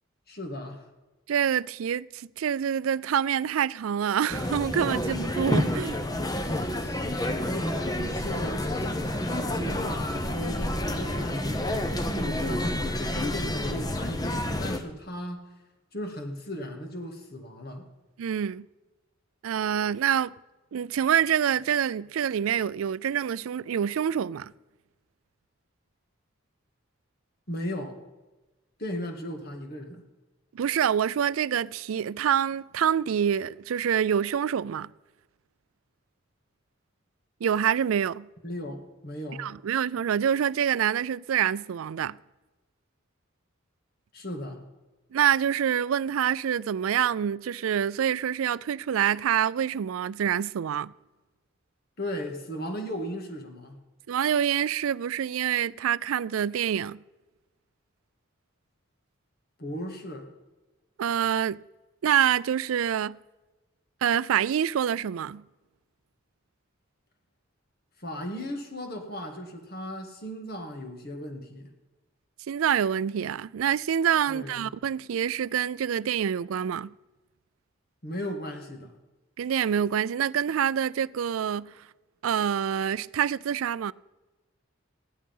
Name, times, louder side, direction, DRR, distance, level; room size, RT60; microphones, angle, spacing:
voice 1, 0.3-0.9 7.4-8.7 9.3-11.7 12.1-15.5 15.9-17.9 27.5-28.0 28.8-30.0 38.4-39.5 44.1-44.6 52.0-53.8 59.6-60.3 68.0-71.7 74.3-74.7 78.0-78.9, equal, 50° left, 2.1 m, -36 dB
voice 2, 1.3-6.0 18.2-18.7 19.4-20.3 20.7-24.5 30.5-34.9 37.4-38.3 39.4-42.2 45.1-50.9 54.1-57.0 61.0-61.6 62.0-63.2 64.0-65.4 72.5-76.9 79.4-81.7 82.2-83.9, right 8 dB, 85° right, 0.4 m, -26 dB
sound 1, 4.3-14.8, left 1 dB, 20° left, 0.9 m, -29 dB
15.0 x 11.0 x 5.5 m
head